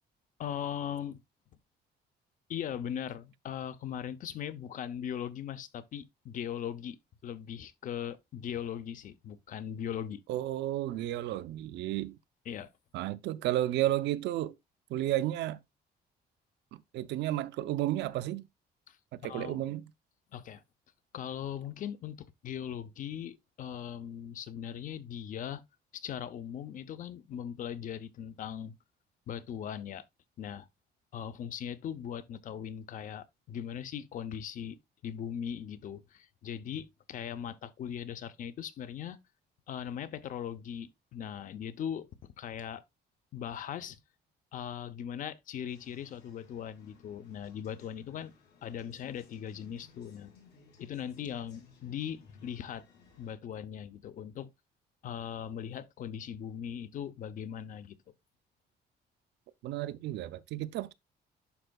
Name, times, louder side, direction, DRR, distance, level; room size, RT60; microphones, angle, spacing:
voice 1, 0.4-1.2 2.5-7.0 7.2-10.2 12.5-12.7 18.9-19.0 19.2-19.7 20.3-20.6 21.1-25.6 25.9-28.7 29.3-30.0 30.4-30.7 31.1-34.8 35.0-39.2 39.7-42.8 43.3-44.0 44.5-48.3 48.6-50.3 50.8-52.8 53.2-54.5 55.0-58.0, left 9 dB, 50° left, 0.6 m, -39 dB
voice 2, 10.3-12.2 12.9-14.5 14.9-15.6 16.7-18.4 19.1-19.9 59.6-60.9, right 14 dB, 90° right, 0.5 m, -32 dB
sound 1, 45.7-53.4, left 5 dB, 70° left, 2.8 m, -59 dB
11.5 x 4.5 x 2.3 m
cardioid pair, 165°, 18 cm